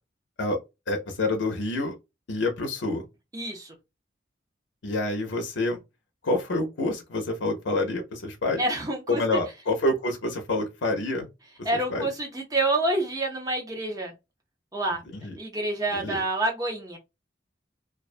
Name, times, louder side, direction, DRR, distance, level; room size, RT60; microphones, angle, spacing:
voice 1, 0.9-2.0 2.3-3.0 4.8-5.8 6.2-8.6 9.1-11.3 11.7-12.1 15.1-15.4 15.9-16.2, left 2 dB, 85° left, 0.6 m, -27 dB
voice 2, 3.3-3.7 8.6-9.2 11.6-14.1 14.7-15.0 15.4-17.0, right 2 dB, 20° right, 0.6 m, -27 dB
2.3 x 2.2 x 2.4 m
head